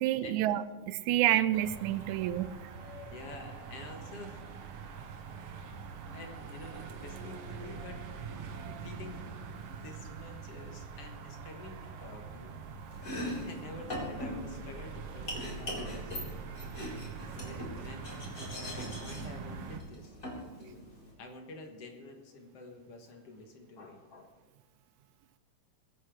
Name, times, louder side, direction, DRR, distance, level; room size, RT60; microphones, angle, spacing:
voice 1, 0.0-2.5, right 13 dB, 85° right, 13 dB, 2.0 m, -28 dB
sound 1, 1.5-19.8, right 5 dB, 60° right, 2.0 m, -44 dB
voice 2, 1.9-4.6 6.1-8.0 8.7-9.3 9.7-12.6 12.9-13.1 13.3-16.2 17.3-20.1 20.6-24.3, left 2 dB, 55° left, 3 dB, 2.4 m, -49 dB
Domestic sounds home sounds, 12.9-21.1, left 1 dB, 25° left, 3.8 m, -41 dB
21.5 x 8.7 x 5.0 m, 1.2 s
omnidirectional pair, 3.4 m